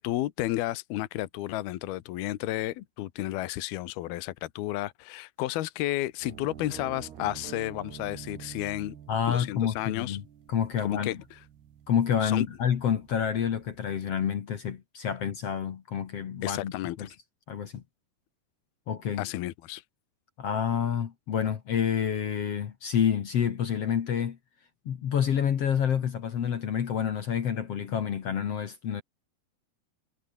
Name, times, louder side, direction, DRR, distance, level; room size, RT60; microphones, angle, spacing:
voice 1, 0.0-9.0 9.3-10.2 10.8-11.4 12.2-12.5 16.4-17.1 19.2-19.8, left 15 dB, 80° left, 2.9 m, -32 dB
sound 1, 6.2-14.1, right 9 dB, 85° right, 4.5 m, -48 dB
voice 2, 9.1-10.2 10.5-11.2 11.9-16.7 17.0-17.1 17.5-17.8 18.9-19.3 20.4-24.4 24.9-29.0, left 8 dB, 55° left, 2.0 m, -28 dB
omnidirectional pair, 4.5 m